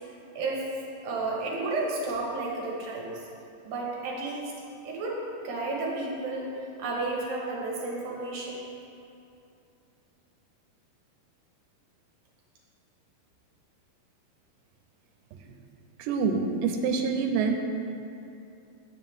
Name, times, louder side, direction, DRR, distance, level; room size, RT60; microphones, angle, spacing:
voice 1, 1.0-3.2 3.6-4.5 4.8-6.5 6.8-8.6, right 3 dB, 65° right, -3 dB, 2.4 m, -32 dB
voice 2, 16.0-17.6, right 5 dB, 80° right, 4 dB, 2.3 m, -26 dB
9.4 x 8.5 x 3.6 m, 2.7 s
omnidirectional pair, 4.1 m